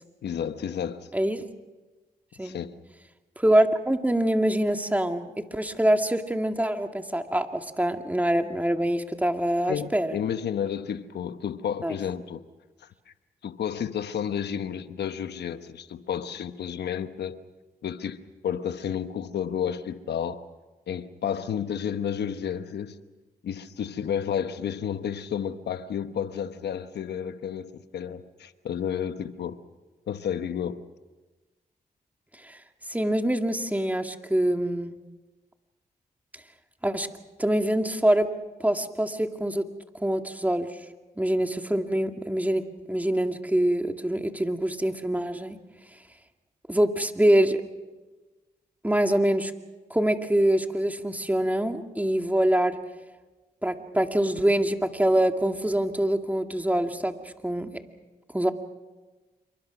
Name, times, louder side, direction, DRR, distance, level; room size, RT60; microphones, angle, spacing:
voice 1, 0.2-1.1 2.4-2.7 9.7-12.4 13.4-17.4 17.8-20.4 20.9-23.0 23.4-29.6 30.1-30.8, left 8 dB, 90° left, 1.1 m, -31 dB
voice 2, 1.1-1.5 2.4-2.6 3.4-10.2 11.8-12.0 32.4-32.6 32.9-34.9 36.8-37.1 37.4-38.3 38.6-39.6 40.0-40.7 41.2-42.6 42.9-45.6 46.7-47.6 48.8-49.5 49.9-52.8 53.6-57.7 58.3-58.5, right 1 dB, 10° right, 2.1 m, -24 dB
27.0 x 23.5 x 6.0 m
cardioid pair, 55°, 17 cm